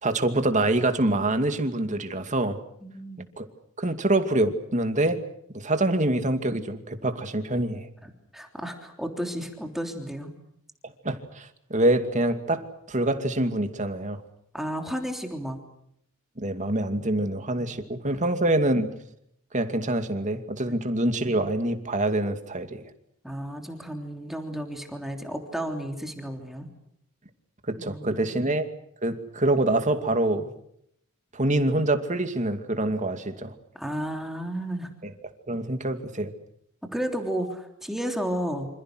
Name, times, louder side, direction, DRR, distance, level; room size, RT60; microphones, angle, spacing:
voice 1, 0.0-2.6 3.4-3.5 3.8-5.2 5.5-7.9 11.0-12.6 12.9-14.2 16.4-18.9 19.5-22.7 27.7-28.7 29.0-30.5 31.3-33.5 35.5-36.3, right 1 dB, 35° right, 7 dB, 2.5 m, -25 dB
voice 2, 2.8-3.3 8.0-10.3 14.5-15.6 18.1-18.2 20.6-20.9 23.2-26.7 27.8-28.5 33.7-34.9 36.9-38.7, equal, ahead, 3 dB, 3.3 m, -33 dB
27.5 x 27.0 x 6.3 m, 0.73 s
head